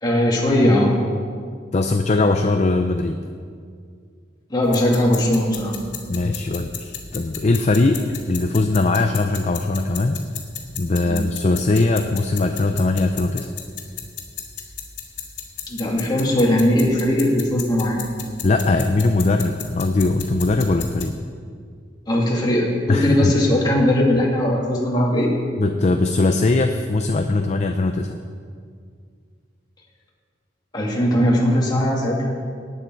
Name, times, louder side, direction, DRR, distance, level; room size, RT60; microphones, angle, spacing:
voice 1, 0.0-1.0 4.5-5.8 11.1-11.3 15.7-18.0 22.1-25.3 30.7-32.3, left 1 dB, 25° left, -3 dB, 2.5 m, -19 dB
voice 2, 1.7-3.2 6.1-10.2 10.8-13.5 18.4-21.2 22.9-23.3 25.6-28.2, left 2 dB, 40° left, 6 dB, 0.5 m, -20 dB
sound 1, 4.6-21.1, left 7 dB, 85° left, 2.0 m, -36 dB
18.5 x 9.3 x 4.6 m, 2.1 s
head